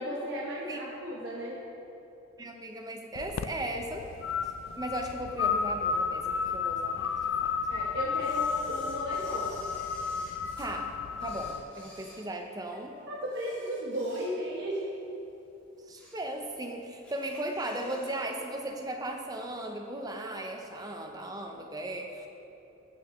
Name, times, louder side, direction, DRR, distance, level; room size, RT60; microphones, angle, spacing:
voice 1, 0.0-1.6 7.7-9.6 13.1-14.9, equal, 55° right, -5 dB, 1.0 m, -35 dB
voice 2, 2.4-4.1 4.4-7.6 10.6-10.9 11.2-12.9 15.9-22.3, right 1 dB, 15° right, 3 dB, 0.6 m, -37 dB
sound 1, 3.1-11.6, left 6 dB, 70° left, 0.3 m, -32 dB
Camera, 8.2-10.7 11.1-12.8 13.2-14.6 15.0-15.1 15.7-16.3 16.6-16.7 17.0-18.2 18.4-18.5, left 1 dB, 5° left, 2.2 m, -53 dB
15.5 x 6.4 x 3.1 m, 2.9 s
head